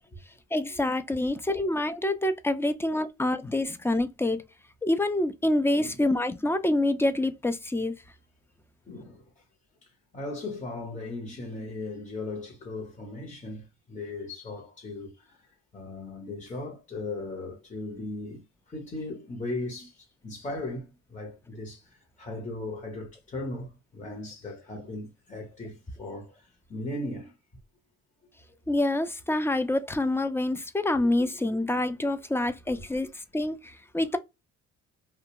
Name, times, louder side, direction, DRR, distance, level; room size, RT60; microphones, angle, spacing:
voice 1, 0.5-4.4 4.8-8.0 28.7-34.2, left 1 dB, 10° left, 0.3 m, -27 dB
voice 2, 8.9-9.4 9.8-27.4 28.5-28.6 32.7-32.8, left 2 dB, 25° left, 0.9 m, -38 dB
2.4 x 2.2 x 2.8 m
cardioid pair, 90°, 30 cm